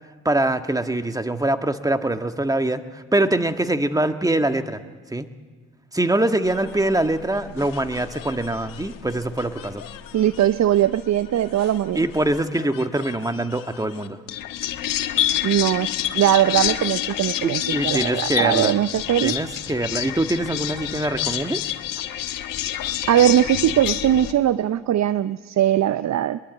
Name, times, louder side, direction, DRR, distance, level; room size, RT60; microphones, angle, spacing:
voice 1, 0.2-4.8 5.1-5.3 5.9-9.8 11.9-14.2 17.4-18.8 19.2-21.6, right 1 dB, 10° right, 8 dB, 1.6 m, -23 dB
sound 1, 6.4-24.3, left 12 dB, 65° left, 1.3 m, -29 dB
voice 2, 10.1-12.0 15.4-15.9 16.1-19.3 23.0-26.4, right 11 dB, 50° right, 15 dB, 0.7 m, -20 dB
24.0 x 22.0 x 8.4 m, 1.4 s
hypercardioid pair, 50°, 35 cm